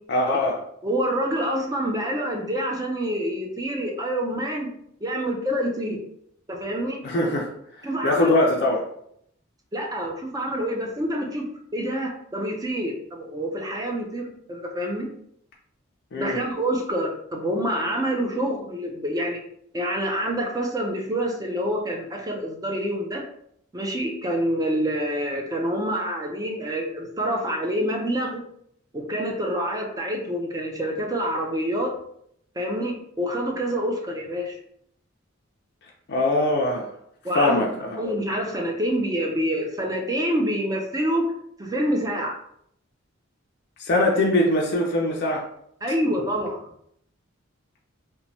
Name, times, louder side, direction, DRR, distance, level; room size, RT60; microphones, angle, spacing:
voice 1, 0.1-0.6 7.0-7.5 8.0-8.9 16.1-16.4 36.1-36.9 37.3-38.0 43.8-45.5, left 1 dB, 55° left, -2 dB, 0.4 m, -22 dB
voice 2, 0.8-4.7 5.0-6.0 6.5-7.0 7.8-8.4 9.7-11.4 11.7-15.1 16.1-19.4 19.7-23.2 23.7-28.4 28.9-31.9 32.6-34.5 37.2-37.6 38.0-41.3 41.6-42.4 45.8-46.6, equal, 20° right, 1 dB, 0.4 m, -27 dB
3.0 x 2.1 x 2.6 m, 0.70 s
head